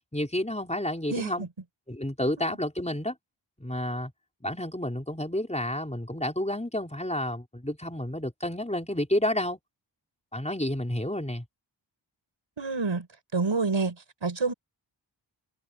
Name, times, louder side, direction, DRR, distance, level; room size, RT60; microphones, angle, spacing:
voice 1, 0.1-1.5 1.9-3.2 3.6-4.1 4.4-9.6 10.3-11.4, left 1 dB, 15° left, 5.4 m, -30 dB
voice 2, 1.1-1.5 2.4-2.6 12.6-13.1 13.3-14.5, right 4 dB, 80° right, 6.0 m, -28 dB
wide cardioid pair, 50°, 45 cm